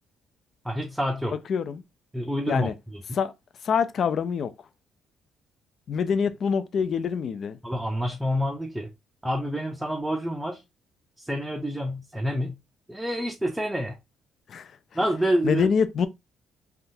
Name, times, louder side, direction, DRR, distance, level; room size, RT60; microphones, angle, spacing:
voice 1, 0.6-1.4 2.1-3.0 7.6-8.9 9.2-10.6 11.2-12.6 12.9-14.0 14.9-15.7, equal, 5° right, 0.5 m, -28 dB
voice 2, 1.5-1.8 2.5-2.7 3.2-3.3 3.6-4.5 5.9-7.6 14.5-14.7 15.4-16.1, left 6 dB, 50° left, 0.3 m, -25 dB
3.5 x 2.3 x 2.6 m
cardioid pair, 105°, 0 cm